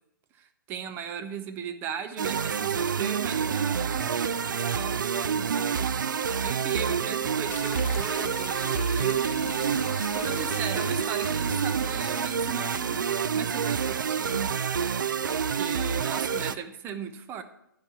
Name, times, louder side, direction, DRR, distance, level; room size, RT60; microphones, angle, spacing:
voice 1, 0.7-5.9 6.4-13.0 13.3-14.9 15.4-17.4, right 7 dB, 20° right, 9 dB, 0.7 m, -37 dB
sound 1, 2.2-16.6, right 7 dB, 60° right, 0.4 m, -28 dB
sound 2, 7.5-12.7, left 7 dB, 40° left, 1.0 m, -42 dB
11.5 x 4.8 x 7.0 m, 0.80 s
figure-of-eight pair, 125°, 12 cm